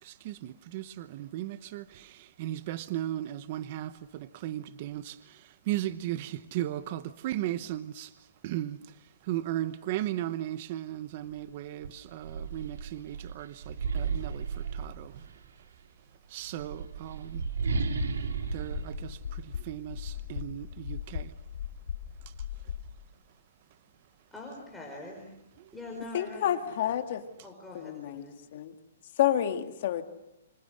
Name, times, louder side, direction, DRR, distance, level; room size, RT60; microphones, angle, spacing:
voice 1, 0.0-5.2 5.7-8.1 8.4-8.8 9.3-14.4 14.7-15.1 16.3-17.4 18.5-19.2 19.6-21.3, right 13 dB, 40° right, 14 dB, 0.9 m, -36 dB
sound 1, 11.3-11.4 11.8-15.5 16.4-20.0, right 5 dB, 85° right, 3.3 m, -34 dB
sound 2, 18.2-22.9, left 8 dB, 75° left, 3.0 m, -39 dB
voice 2, 24.3-25.3 25.7-27.0 27.4-28.4, left 2 dB, ahead, -3 dB, 4.9 m, -44 dB
voice 3, 26.1-27.2 27.7-28.3 28.5-28.7 29.2-30.0, left 11 dB, 50° left, 7 dB, 2.1 m, -29 dB
29.5 x 26.0 x 6.5 m, 0.86 s
hypercardioid pair, 160°, 0 cm